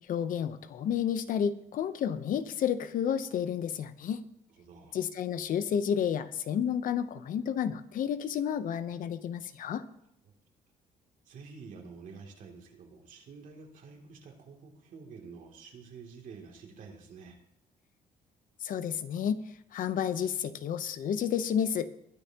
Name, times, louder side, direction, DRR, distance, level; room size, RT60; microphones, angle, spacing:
voice 1, 0.1-4.2 4.9-9.8 18.6-19.4 19.7-21.9, left 8 dB, 65° left, 12 dB, 0.8 m, -31 dB
voice 2, 4.6-5.0 11.2-17.4, right 5 dB, 65° right, 1 dB, 2.8 m, -49 dB
21.0 x 10.0 x 3.0 m, 0.76 s
cardioid pair, 110°, 15 cm